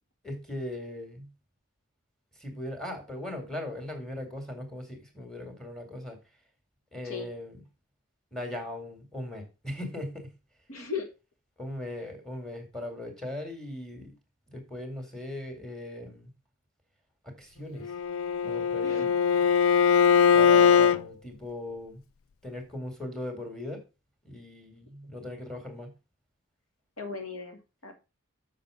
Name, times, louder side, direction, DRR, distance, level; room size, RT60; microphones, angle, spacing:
voice 1, 0.2-1.3 2.3-6.2 6.9-7.6 8.3-10.3 11.6-14.1 14.5-16.3 17.2-17.9 18.4-19.1 20.3-22.0 22.4-23.8 24.2-25.9, left 1 dB, 5° left, 3 dB, 2.2 m, -39 dB
voice 2, 10.7-11.1 18.8-19.1 27.0-27.9, left 5 dB, 90° left, 5 dB, 1.8 m, -38 dB
Bowed string instrument, 17.8-21.0, left 7 dB, 70° left, 0.4 m, -21 dB
6.6 x 6.6 x 4.9 m, 0.29 s
head